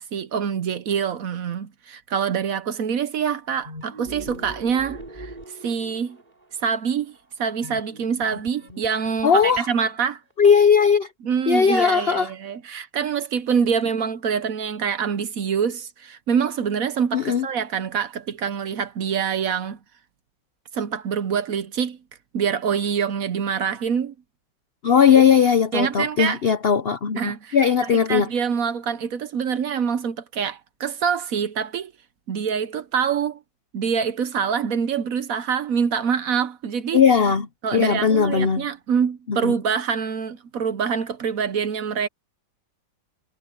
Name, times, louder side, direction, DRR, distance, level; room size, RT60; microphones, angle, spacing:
voice 1, 0.0-5.3 5.6-6.2 6.6-10.2 11.2-19.8 20.7-22.0 22.3-24.1 25.7-26.4 27.2-27.6 28.1-31.9 32.3-33.4 33.7-37.0 37.6-42.1, right 7 dB, 60° right, 1.1 m, -25 dB
sound 1, 3.6-6.2 7.6-10.1, right 1 dB, 25° right, 4.9 m, -40 dB
voice 2, 9.2-9.7 10.4-11.1 11.5-12.3 17.1-17.5 24.8-27.2 27.5-28.3 36.9-37.5 37.7-38.7 39.3-39.5, left 6 dB, 60° left, 0.6 m, -18 dB
omnidirectional pair, 2.0 m